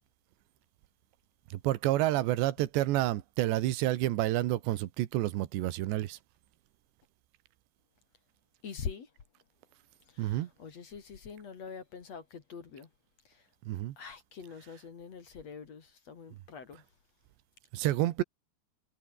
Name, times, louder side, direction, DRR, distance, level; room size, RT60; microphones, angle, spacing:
voice 1, 1.5-6.2 10.2-10.5 13.7-14.0 17.7-18.2, right 15 dB, 85° right, 3.5 m, -29 dB
voice 2, 8.6-9.1 10.1-12.9 14.0-16.8, left 6 dB, 45° left, 3.1 m, -44 dB
omnidirectional pair, 4.9 m